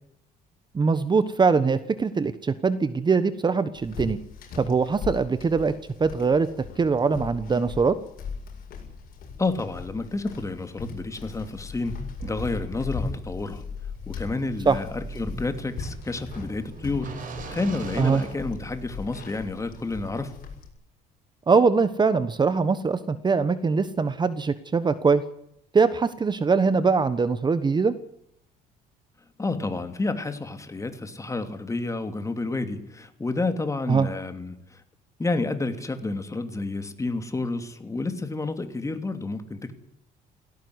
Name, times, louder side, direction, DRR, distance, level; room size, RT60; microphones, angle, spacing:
voice 1, 0.7-4.2 4.6-5.7 6.0-6.5 6.8-8.0 14.6-14.8 18.0-18.2 21.5-25.2 25.7-27.9 33.9-34.1, right 4 dB, 25° right, 13 dB, 1.2 m, -22 dB
sound 1, 3.7-20.7, left 5 dB, 60° left, 8.0 m, -39 dB
voice 2, 9.4-13.6 14.1-17.1 17.5-20.3 29.4-34.8 35.2-39.7, left 3 dB, 20° left, 8 dB, 2.9 m, -30 dB
sound 2, 12.2-19.1, right 4 dB, 50° right, 5.5 m, -41 dB
17.5 x 17.0 x 9.7 m, 0.75 s
cardioid pair, 110°, 17 cm